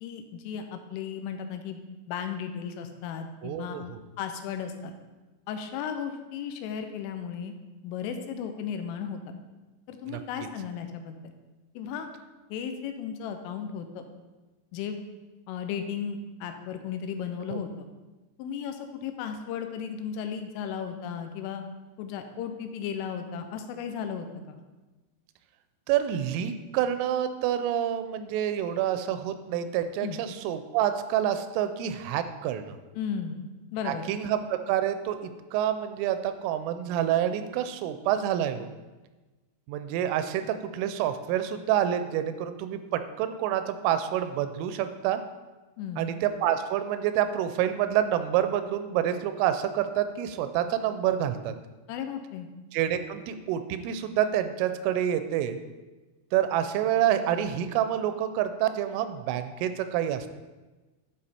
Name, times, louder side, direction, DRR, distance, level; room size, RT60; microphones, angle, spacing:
voice 1, 0.0-1.8 2.1-3.8 4.2-4.9 5.5-7.5 7.8-9.3 9.9-11.3 11.8-12.1 12.5-14.1 14.7-15.0 15.5-17.9 18.4-21.6 22.0-24.6 30.0-30.2 33.0-33.4 33.7-34.1 45.8-46.1 51.9-52.5, left 7 dB, 85° left, 7 dB, 3.2 m, -35 dB
voice 2, 3.4-4.0 10.1-10.2 17.5-17.6 25.9-32.8 33.8-38.7 39.7-45.2 46.0-51.5 52.7-55.6 56.3-60.3, right 10 dB, 85° right, 10 dB, 3.1 m, -28 dB
11.5 x 5.1 x 4.3 m, 1.2 s
omnidirectional pair, 5.7 m